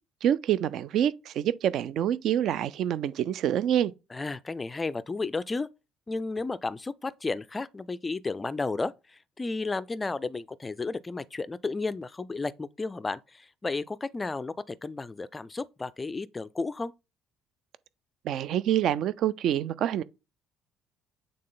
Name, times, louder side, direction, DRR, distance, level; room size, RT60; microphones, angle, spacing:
voice 1, 0.2-3.9 18.2-20.0, right 10 dB, 55° right, 0.4 m, -26 dB
voice 2, 4.1-5.7 6.1-16.9, left 3 dB, 15° left, 0.4 m, -33 dB
8.6 x 3.8 x 3.9 m
cardioid pair, 160°, 0 cm